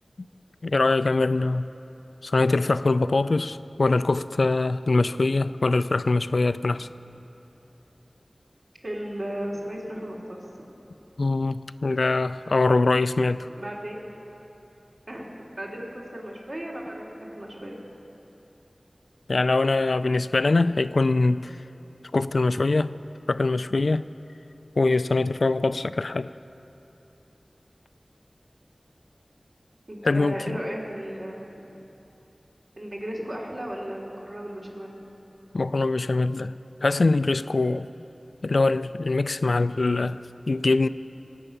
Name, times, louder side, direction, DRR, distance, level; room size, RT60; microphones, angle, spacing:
voice 1, 0.6-1.7 2.2-6.9 11.2-13.5 19.3-21.5 22.1-22.9 23.3-24.1 24.8-26.3 30.0-30.6 35.5-36.5 36.8-37.8 38.4-40.2 40.5-40.9, left 3 dB, 80° left, 0.3 m, -23 dB
voice 2, 8.8-10.4 13.6-14.0 15.1-17.7 29.9-31.7 32.8-35.0, equal, 60° right, 3.4 m, -35 dB
22.0 x 8.9 x 6.7 m
wide cardioid pair, 55°, 0 cm